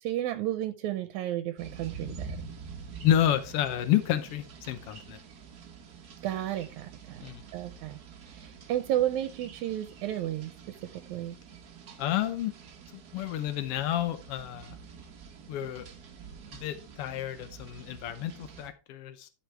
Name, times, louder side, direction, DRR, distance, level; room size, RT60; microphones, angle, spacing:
voice 1, 0.0-2.5 6.2-8.0 8.2-11.4, right 12 dB, 80° right, 1.9 m, -33 dB
sound 1, 1.6-18.7, right 5 dB, 60° right, 0.9 m, -47 dB
voice 2, 3.0-5.2 7.2-7.4 12.0-12.5 12.9-14.8 15.5-15.9 16.5-19.3, left 11 dB, 90° left, 1.3 m, -30 dB
11.0 x 6.3 x 3.4 m
omnidirectional pair, 3.5 m